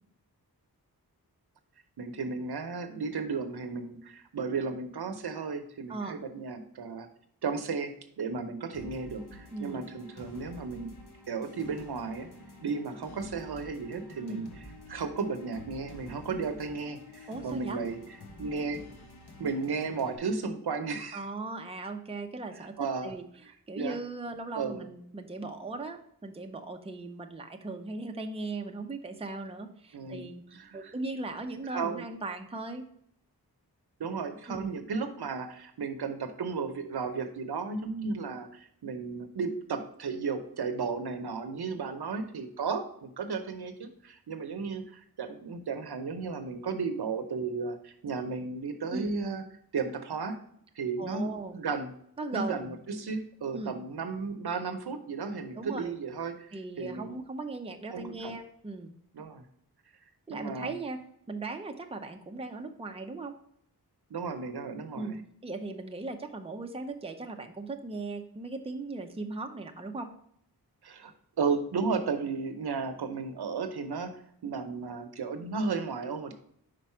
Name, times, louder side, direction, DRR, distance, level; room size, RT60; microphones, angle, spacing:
voice 1, 2.0-7.1 7.4-10.9 11.3-12.3 12.6-14.5 14.9-18.0 18.4-18.8 19.4-21.2 22.8-23.2 23.8-24.0 24.6-24.9 29.9-30.9 31.7-32.1 34.0-49.4 49.7-50.4 50.8-51.9 52.3-56.5 56.8-57.1 57.9-58.3 59.1-59.4 60.3-60.7 64.1-65.2 70.8-76.3, right 4 dB, 80° right, 7 dB, 0.8 m, -34 dB
sound 1, 8.7-20.2, left 1 dB, 80° left, 1.0 m, -49 dB
voice 2, 9.5-9.8 14.2-14.4 17.3-17.8 21.1-22.8 23.0-23.2 23.7-30.4 30.7-32.9 34.5-34.7 48.9-49.1 51.0-51.6 52.2-52.7 53.5-53.7 55.5-55.9 56.5-58.9 60.3-61.0 61.3-63.4 65.0-65.2 65.4-70.1, right 3 dB, 15° right, 4 dB, 0.6 m, -38 dB
5.1 x 4.7 x 4.3 m, 0.68 s
wide cardioid pair, 95°, 38 cm